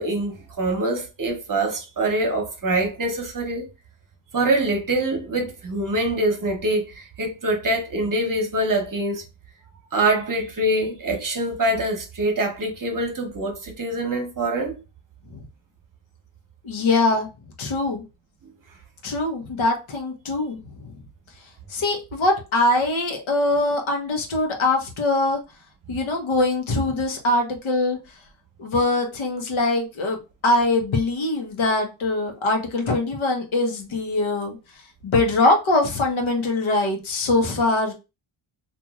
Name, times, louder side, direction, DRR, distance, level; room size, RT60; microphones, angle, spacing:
voice 1, 0.0-3.7 4.3-9.2 9.9-14.7, right 1 dB, 40° right, 0.9 m, -24 dB
voice 2, 16.6-17.3 17.6-18.0 19.0-20.6 21.7-25.4 25.9-28.0 28.6-34.6 35.0-37.9, left 2 dB, 70° left, 1.0 m, -22 dB
3.0 x 2.5 x 2.4 m
cardioid pair, 95°, 49 cm